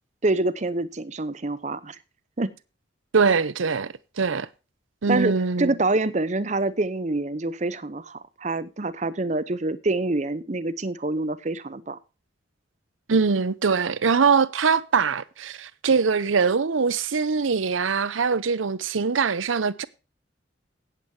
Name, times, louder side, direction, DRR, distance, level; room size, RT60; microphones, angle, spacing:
voice 1, 0.2-2.0 2.4-2.5 5.1-12.0, right 2 dB, 35° right, 0.7 m, -26 dB
voice 2, 3.1-4.5 5.0-5.7 13.1-19.8, right 5 dB, 90° right, 0.7 m, -22 dB
17.0 x 8.3 x 2.8 m
head